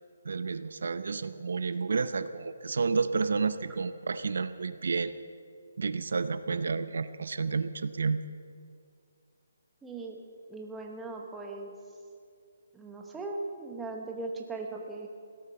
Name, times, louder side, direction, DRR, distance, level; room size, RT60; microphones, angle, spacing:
voice 1, 0.2-5.1 5.8-8.2, right 4 dB, 65° right, 13 dB, 0.6 m, -30 dB
voice 2, 9.8-10.2 10.5-11.7 12.7-15.1, right 3 dB, 5° right, 1 dB, 0.9 m, -38 dB
17.0 x 12.5 x 6.8 m, 2.3 s
hypercardioid pair, 175°, 0 cm